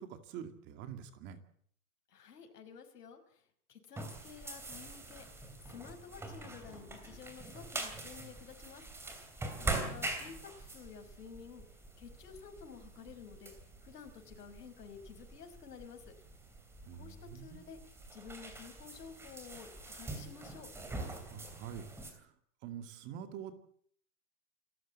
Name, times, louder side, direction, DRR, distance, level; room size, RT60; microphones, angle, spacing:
voice 1, 0.0-1.4 9.6-10.0 16.9-17.6 21.3-22.3 22.6-23.5, right 8 dB, 25° right, 8 dB, 2.2 m, -46 dB
voice 2, 2.1-8.8 9.6-11.6 12.0-13.5 13.8-16.1 16.9-17.8 18.1-20.7, left 6 dB, 85° left, 6 dB, 5.2 m, -52 dB
sound 1, 4.0-22.1, right 2 dB, 5° right, 2.8 m, -44 dB
27.5 x 14.0 x 8.5 m, 0.62 s
hypercardioid pair, 170°, 46 cm